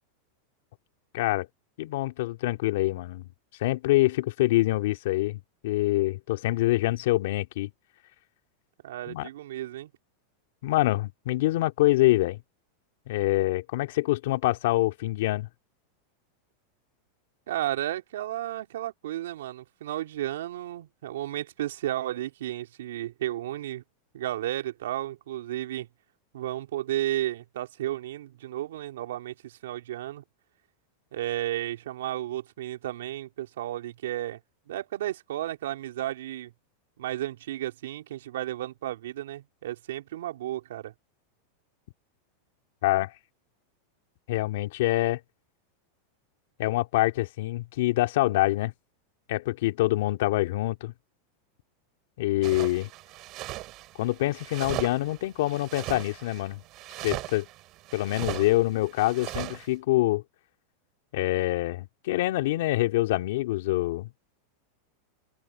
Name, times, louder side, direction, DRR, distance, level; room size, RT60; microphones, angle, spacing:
voice 1, 1.1-1.5 1.8-3.3 3.6-7.7 9.1-9.3 10.6-12.4 13.1-15.5 42.8-43.1 44.3-45.2 46.6-48.7 49.3-50.9 52.2-52.9 54.0-56.6 57.0-57.5 57.9-60.2 61.1-64.1, left 17 dB, 70° left, 2.5 m, -25 dB
voice 2, 8.8-9.9 17.5-23.8 24.1-25.9 26.3-30.2 31.1-34.4 34.7-36.5 37.0-40.9, right 13 dB, 80° right, 3.4 m, -33 dB
sound 1, 52.4-59.7, right 18 dB, 45° right, 2.7 m, -38 dB
hypercardioid pair, 120°, 0 cm